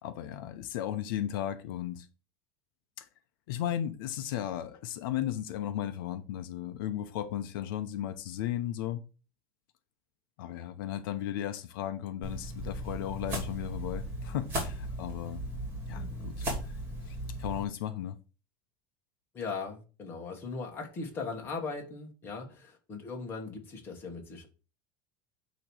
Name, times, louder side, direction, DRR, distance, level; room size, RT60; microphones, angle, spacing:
voice 1, 0.0-2.1 3.0-3.1 3.5-9.0 10.4-15.4 15.9-16.5 17.1-18.2, left 11 dB, 80° left, 0.8 m, -35 dB
sound 1, 12.2-17.6, right 1 dB, 20° right, 2.5 m, -37 dB
voice 2, 19.3-24.5, left 4 dB, 20° left, 1.5 m, -39 dB
9.0 x 3.1 x 6.2 m
cardioid pair, 180°, 11 cm